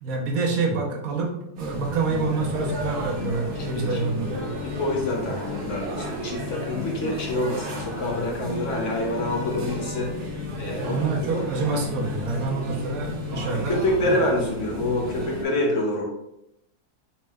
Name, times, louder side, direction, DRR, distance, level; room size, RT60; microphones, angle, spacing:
voice 1, 0.0-4.6 5.2-5.4 10.8-13.7 14.1-14.2, right 4 dB, 70° right, 0 dB, 1.1 m, -27 dB
sound 1, 1.6-15.4, left 1 dB, 85° right, 1.4 m, -32 dB
voice 2, 4.8-10.1 10.6-11.0 11.3-11.5 13.5-16.0, left 1 dB, 65° left, 0 dB, 0.8 m, -26 dB
4.3 x 2.0 x 3.3 m, 0.83 s
omnidirectional pair, 1.6 m